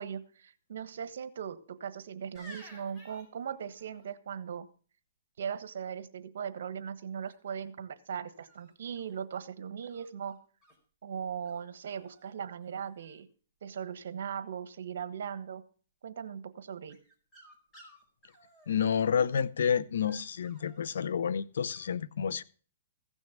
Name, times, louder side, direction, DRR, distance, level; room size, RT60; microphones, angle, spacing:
voice 1, 0.0-4.7 5.4-10.4 11.0-13.3 13.6-15.6 16.0-17.0, right 7 dB, 70° right, 1.3 m, -39 dB
sound 1, 2.4-4.1 7.3-7.7 8.4-9.2 9.8-10.8 11.5-11.6 11.9-12.3 12.6-13.2 16.9-19.4 19.9-20.8 21.7-21.9, equal, 20° left, 4.5 m, -56 dB
voice 2, 18.7-22.4, left 7 dB, 75° left, 0.7 m, -29 dB
15.5 x 6.3 x 7.4 m
hypercardioid pair, 150°, 0 cm